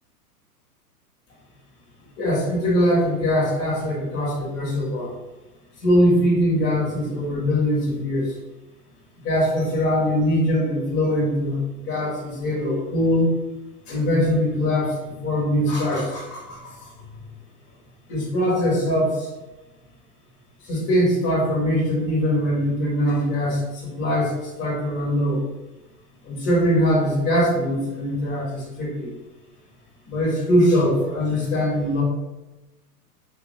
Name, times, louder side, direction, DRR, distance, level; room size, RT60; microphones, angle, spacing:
voice 1, 2.1-5.1 5.8-8.4 9.2-13.3 13.9-16.9 18.1-19.3 20.6-25.4 26.2-29.1 30.1-32.0, equal, 30° left, -5 dB, 1.4 m, -22 dB
3.2 x 2.7 x 3.5 m, 1.1 s
figure-of-eight pair, 110°, 48 cm